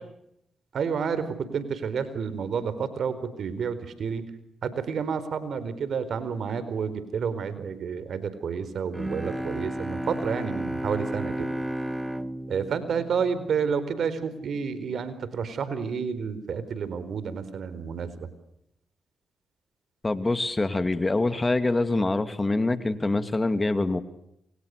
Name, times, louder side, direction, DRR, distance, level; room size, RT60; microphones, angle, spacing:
voice 1, 0.7-4.3 4.6-11.5 12.5-18.3, right 6 dB, 65° right, 14 dB, 4.4 m, -30 dB
Bowed string instrument, 8.9-14.1, right 1 dB, 10° right, 1.2 m, -33 dB
voice 2, 20.0-24.0, left 2 dB, 25° left, 10 dB, 2.6 m, -25 dB
29.0 x 28.5 x 6.8 m, 0.79 s
cardioid pair, 70°, 0 cm